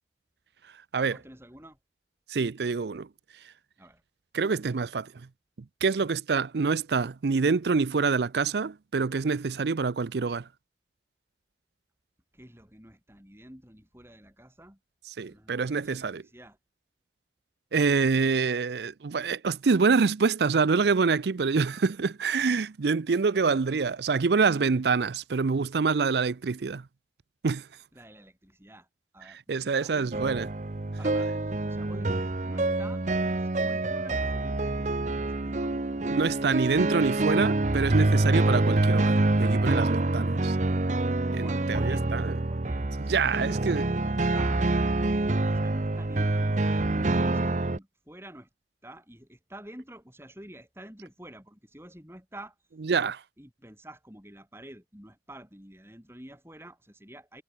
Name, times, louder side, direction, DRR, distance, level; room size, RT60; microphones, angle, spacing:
voice 1, 1.0-1.8 3.8-4.0 12.3-14.8 15.3-16.6 27.9-28.9 29.1-30.1 31.0-31.3 31.6-35.8 41.1-44.6 45.5-48.5 48.8-52.6 53.4-57.4, right 1 dB, 15° right, 7.3 m, -49 dB
voice 2, 2.3-3.1 4.3-5.1 5.8-10.5 15.1-16.2 17.7-26.8 27.4-27.7 29.3-30.5 36.1-40.6 41.3-42.4 43.0-43.8 52.8-53.2, right 4 dB, 70° right, 0.5 m, -26 dB
sound 1, 30.1-47.8, right 2 dB, 45° right, 0.8 m, -26 dB
head